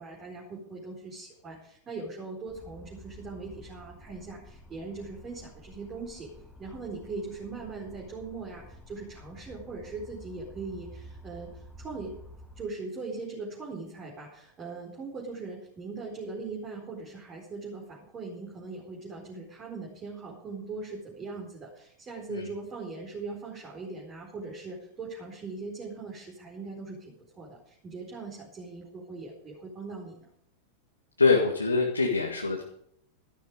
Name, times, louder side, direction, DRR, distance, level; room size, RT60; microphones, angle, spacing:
voice 1, 0.0-6.3 6.6-12.2 12.5-30.3, right 3 dB, 25° right, -3 dB, 4.5 m, -40 dB
sound 1, 2.5-12.7, equal, ahead, 1.9 m, -50 dB
voice 2, 31.2-32.6, left 4 dB, 80° left, 1 dB, 1.9 m, -24 dB
13.5 x 12.0 x 5.3 m, 0.70 s
figure-of-eight pair, 90°, 0 cm